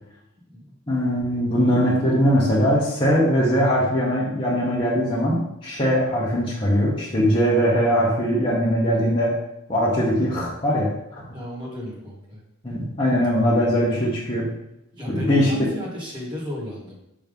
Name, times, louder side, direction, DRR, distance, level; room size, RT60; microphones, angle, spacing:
voice 1, 0.9-9.3 9.7-11.2 12.6-14.5 15.1-15.5, equal, 25° left, -9 dB, 1.2 m, -21 dB
voice 2, 11.3-12.4 14.9-17.0, equal, 20° right, -5 dB, 1.8 m, -33 dB
6.0 x 3.1 x 5.3 m, 0.86 s
head